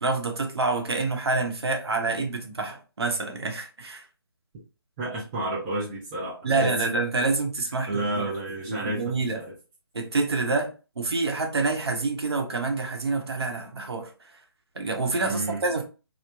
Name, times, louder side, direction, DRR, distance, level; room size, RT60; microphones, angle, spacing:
voice 1, 0.0-4.1 6.4-8.3 8.7-9.4 9.9-14.3 14.7-15.8, right 3 dB, 75° right, 0.8 m, -27 dB
voice 2, 5.0-6.7 7.9-9.5 15.2-15.7, right 2 dB, 15° right, 0.5 m, -31 dB
3.0 x 2.0 x 2.2 m
figure-of-eight pair, 155°, 14 cm